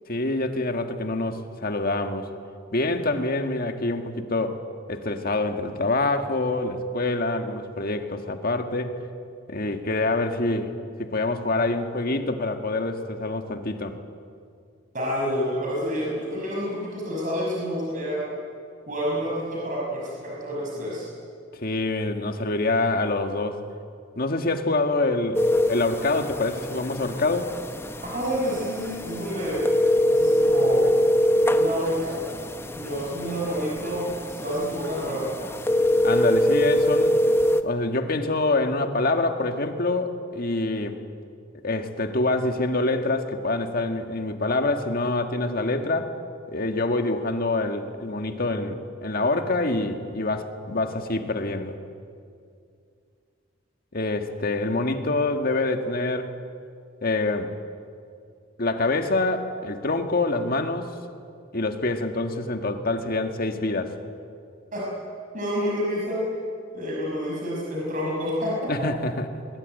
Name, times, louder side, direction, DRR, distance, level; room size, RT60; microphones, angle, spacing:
voice 1, 0.1-2.3 2.7-4.6 4.9-9.0 9.5-10.7 11.0-14.0 21.5-23.6 24.2-25.4 25.7-27.5 36.0-37.2 37.6-41.0 41.6-46.1 46.5-51.8 53.9-56.3 57.0-57.5 58.6-60.9 61.5-63.9 68.7-69.3, left 2 dB, 50° left, 6 dB, 1.8 m, -26 dB
voice 2, 14.9-18.2 18.9-21.1 28.1-29.6 30.1-30.9 31.5-32.2 32.7-35.3 64.7-64.8 65.3-66.2 66.7-68.7, equal, 45° right, -4 dB, 5.9 m, -28 dB
sound 1, 25.3-37.6, equal, 15° left, 0.9 m, -24 dB
21.0 x 20.5 x 9.2 m, 2.4 s
head